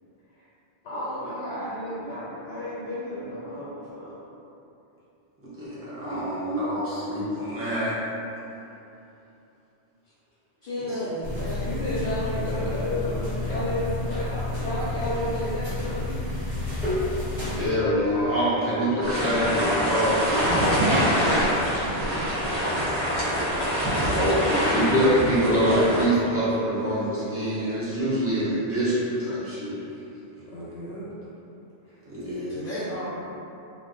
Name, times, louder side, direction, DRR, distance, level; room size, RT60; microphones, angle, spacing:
voice 1, 0.8-4.2 10.9-11.0 11.6-16.3 30.5-31.1, left 1 dB, 90° left, -8 dB, 0.9 m, -32 dB
voice 2, 5.6-8.0 17.5-20.3 24.0-29.8 32.1-32.6, equal, 15° right, -11 dB, 0.7 m, -25 dB
voice 3, 10.6-11.7 12.1-12.4 12.7-13.8 32.5-33.0, equal, 60° left, -10 dB, 0.7 m, -34 dB
sound 1, 11.2-17.7, left 2 dB, 50° right, 1.4 m, -30 dB
sound 2, 19.0-26.0, equal, 30° left, 0.7 m, -24 dB
2.6 x 2.1 x 3.7 m, 2.9 s
omnidirectional pair, 1.2 m